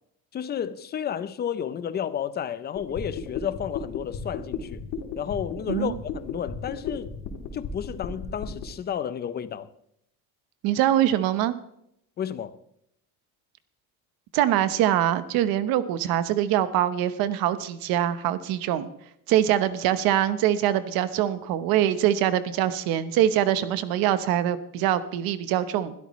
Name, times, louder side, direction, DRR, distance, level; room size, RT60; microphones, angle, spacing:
voice 1, 0.3-4.8 5.2-7.1 7.5-9.7 12.2-12.6, left 9 dB, 25° left, 0.6 m, -31 dB
sound 1, 2.8-8.6, left 7 dB, 60° left, 3.2 m, -34 dB
voice 2, 10.6-11.5 14.3-18.9 19.3-25.9, right 11 dB, 75° right, 1.1 m, -23 dB
21.0 x 13.0 x 3.2 m
cardioid pair, 155°, 36 cm